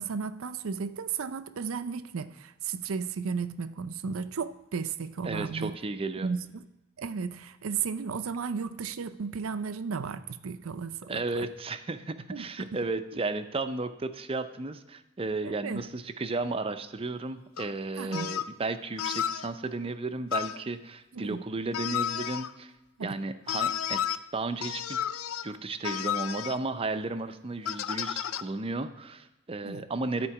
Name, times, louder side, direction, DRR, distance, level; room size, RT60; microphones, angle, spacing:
voice 1, 0.0-5.7 6.2-6.7 7.0-11.2 12.3-12.8 15.4-15.8 18.0-18.3 21.1-21.4 23.0-23.2 29.6-29.8, right 5 dB, 75° right, 0.5 m, -34 dB
voice 2, 5.2-6.3 11.1-22.7 23.0-24.0 24.3-25.0 25.4-30.3, right 3 dB, 25° right, 0.5 m, -34 dB
sound 1, 17.6-17.7 18.1-18.5 19.0-19.5 20.3-20.6 21.7-22.5 23.5-24.2 24.6-25.5 25.8-26.6 27.7-28.4, left 10 dB, 80° left, 0.4 m, -32 dB
13.0 x 4.4 x 5.8 m
head